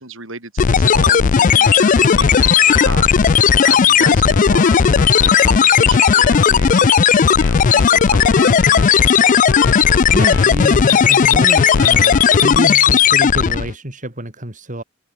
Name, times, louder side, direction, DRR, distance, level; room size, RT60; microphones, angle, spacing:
voice 1, 0.0-2.5 2.8-9.1, right 3 dB, 65° right, 7.3 m, -33 dB
sound 1, 0.6-13.7, left 7 dB, 40° left, 0.4 m, -13 dB
sound 2, 1.6-12.6, left 5 dB, 60° left, 2.6 m, -31 dB
voice 2, 10.1-14.8, right 1 dB, 40° right, 5.2 m, -26 dB
open air
head